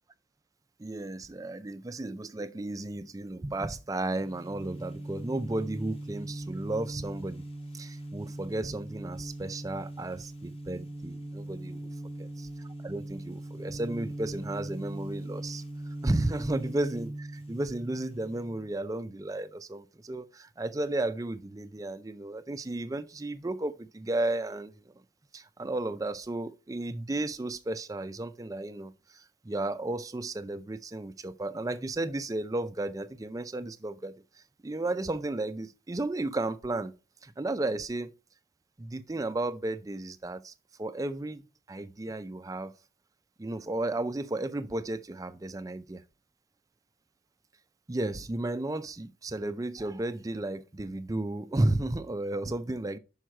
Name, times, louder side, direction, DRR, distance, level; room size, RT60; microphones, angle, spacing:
voice 1, 0.8-7.4 7.7-11.8 12.2-12.3 12.8-15.6 16.0-24.9 25.3-36.9 37.2-38.1 38.8-40.5 40.8-42.7 43.4-46.0 47.9-53.0, right 2 dB, 15° right, 0.3 m, -33 dB
sound 1, 4.1-18.7, right 1 dB, 30° left, 1.0 m, -40 dB
6.2 x 5.5 x 4.4 m
head